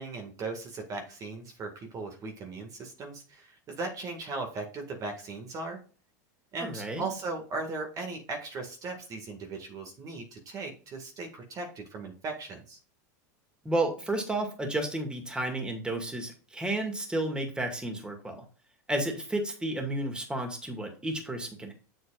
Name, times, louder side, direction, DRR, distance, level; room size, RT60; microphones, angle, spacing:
voice 1, 0.0-5.8 6.5-12.8, right 3 dB, 35° right, 3 dB, 1.9 m, -38 dB
voice 2, 6.6-7.1 13.6-18.5 18.9-21.7, right 1 dB, 10° right, 4 dB, 2.1 m, -32 dB
7.9 x 7.6 x 2.5 m, 0.38 s
supercardioid pair, 115°, 10 cm